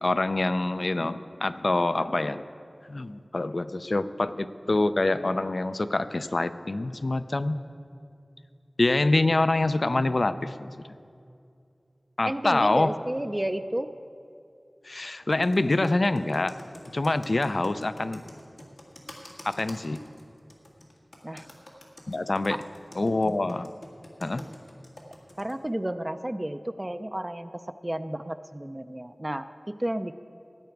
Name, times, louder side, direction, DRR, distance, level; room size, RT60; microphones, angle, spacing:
voice 1, 0.0-2.4 2.9-7.6 8.8-10.7 12.2-12.9 14.8-16.6 16.9-18.2 19.4-20.0 22.1-22.6 23.0-23.7 24.2-24.4, left 2 dB, 65° left, 13 dB, 0.4 m, -25 dB
voice 2, 12.2-13.9 21.2-21.5 22.5-22.6 23.2-23.3 24.4-24.6 25.4-30.1, right 1 dB, 25° right, 10 dB, 0.4 m, -32 dB
Computer keyboard, 15.3-25.6, left 1 dB, 90° left, 1.8 m, -47 dB
17.0 x 9.5 x 4.6 m, 2.5 s
wide cardioid pair, 55°, 0 cm